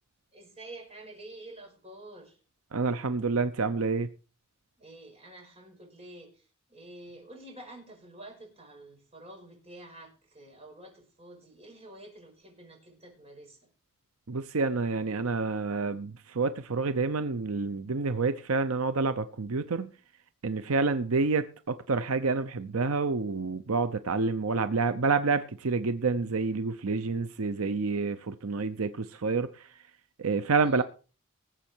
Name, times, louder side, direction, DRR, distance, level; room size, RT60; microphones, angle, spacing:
voice 1, 0.3-2.4 4.8-13.7 20.6-21.0 30.6-30.8, right 1 dB, 30° right, 5.7 m, -49 dB
voice 2, 2.7-4.1 14.3-19.9 20.4-29.7 30.2-30.8, right 4 dB, 80° right, 0.7 m, -28 dB
20.0 x 7.6 x 4.6 m
head